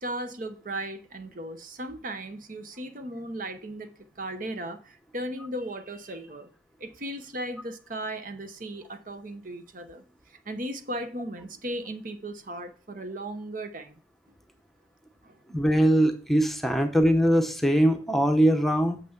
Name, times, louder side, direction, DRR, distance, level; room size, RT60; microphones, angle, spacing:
voice 1, 0.0-3.9 4.2-6.5 6.8-10.0 10.3-14.0 15.2-15.4, right 1 dB, 50° right, 1.0 m, -36 dB
voice 2, 15.5-19.0, equal, ahead, 0.9 m, -22 dB
6.7 x 6.1 x 7.2 m
head